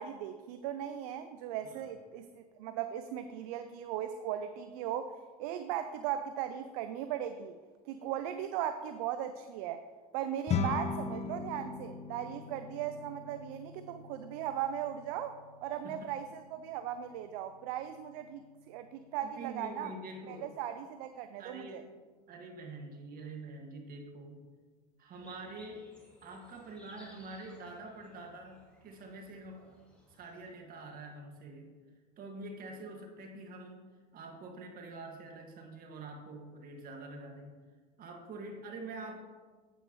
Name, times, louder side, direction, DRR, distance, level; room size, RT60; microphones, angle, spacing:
voice 1, 0.0-7.6 7.9-9.8 10.1-19.9 20.3-21.8, right 10 dB, 70° right, 10 dB, 0.5 m, -38 dB
sound 1, 10.5-20.0, left 5 dB, 35° left, 0.7 m, -41 dB
voice 2, 15.8-16.1 19.2-20.6 21.4-21.9 22.3-24.4 25.0-25.9 26.2-29.8 30.1-31.7 32.2-33.9 34.1-37.5 38.0-39.2, right 2 dB, 45° right, 2 dB, 1.9 m, -46 dB
sound 2, 25.1-30.5, left 1 dB, 5° left, 2.8 m, -61 dB
9.1 x 8.1 x 3.1 m, 1.4 s
hypercardioid pair, 90°, 20 cm